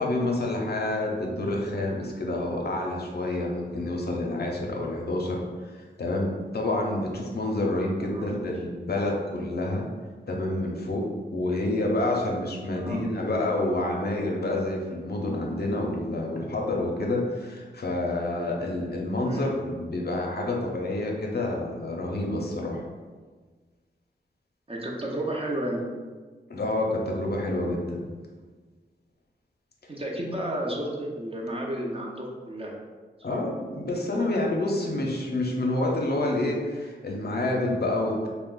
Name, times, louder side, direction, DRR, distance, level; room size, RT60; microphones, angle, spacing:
voice 1, 0.0-9.8 10.3-22.8 26.5-28.1 33.2-38.3, left 2 dB, 55° left, -1 dB, 0.6 m, -28 dB
voice 2, 8.1-8.6 12.7-13.0 19.2-19.5 24.7-25.8 29.9-32.8 33.3-33.4, right 1 dB, 30° right, -2 dB, 0.6 m, -32 dB
2.4 x 2.1 x 3.7 m, 1.4 s
cardioid pair, 40°, 19 cm